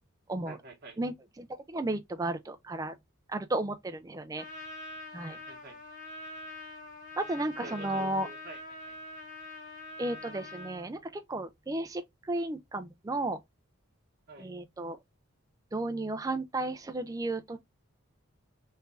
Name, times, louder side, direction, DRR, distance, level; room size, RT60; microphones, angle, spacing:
voice 1, 0.4-1.0 5.3-5.8 7.6-9.0 14.3-14.5, right 2 dB, 50° right, 0.8 m, -48 dB
voice 2, 1.0-2.9 3.3-4.5 5.1-5.4 7.2-8.3 10.0-13.4 14.4-15.0 15.7-17.6, right 2 dB, 15° right, 0.3 m, -34 dB
Trumpet, 4.4-10.9, left 2 dB, 40° left, 1.1 m, -44 dB
3.2 x 2.4 x 3.2 m
head